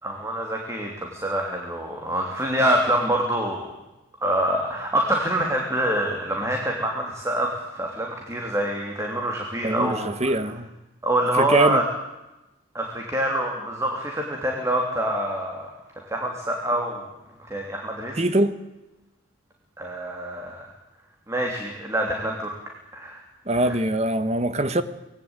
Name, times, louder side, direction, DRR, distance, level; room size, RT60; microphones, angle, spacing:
voice 1, 0.0-3.7 4.2-10.4 11.0-11.8 12.7-15.7 16.1-17.1 17.4-18.2 19.8-20.7 21.3-22.5 22.9-23.2 23.5-23.8, right 1 dB, 15° right, 3.2 m, -26 dB
voice 2, 9.6-10.7 11.4-11.8 18.2-18.6 23.4-24.8, right 1 dB, 35° right, 1.4 m, -23 dB
26.5 x 19.5 x 9.0 m
head